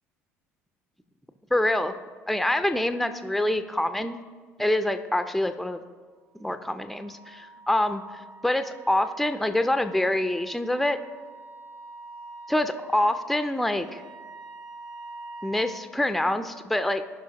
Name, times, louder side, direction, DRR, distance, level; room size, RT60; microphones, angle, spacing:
voice 1, 1.5-2.0 2.3-4.2 4.6-5.8 6.3-8.0 8.4-11.0 12.5-14.0 15.4-17.0, left 1 dB, ahead, 10 dB, 0.5 m, -26 dB
Wind instrument woodwind instrument, 6.4-15.9, right 2 dB, 45° right, 1.6 m, -46 dB
15.5 x 5.6 x 2.9 m, 1.5 s
figure-of-eight pair, 60°, 8 cm